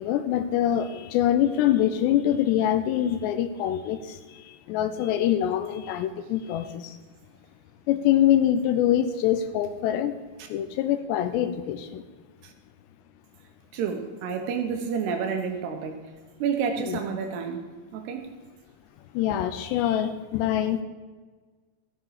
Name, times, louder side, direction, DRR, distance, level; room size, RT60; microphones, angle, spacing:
voice 1, 0.0-4.2 4.7-6.9 7.9-10.1 10.5-12.0 16.9-17.0 19.2-20.8, left 11 dB, 80° left, 9 dB, 2.7 m, -24 dB
voice 2, 13.7-16.1 16.4-17.7 17.9-18.3, right 6 dB, 75° right, 4 dB, 3.0 m, -29 dB
15.0 x 9.0 x 4.9 m, 1.4 s
omnidirectional pair, 5.2 m